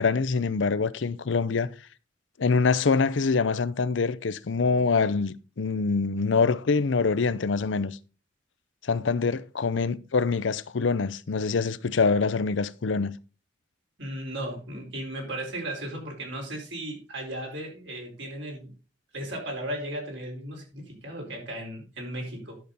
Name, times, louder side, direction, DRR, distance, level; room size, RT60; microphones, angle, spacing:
voice 1, 0.0-1.7 2.4-8.0 8.8-13.2, left 4 dB, 80° left, 0.6 m, -25 dB
voice 2, 14.0-18.7 19.1-22.6, right 1 dB, 70° right, 4.5 m, -36 dB
11.0 x 6.9 x 3.9 m
head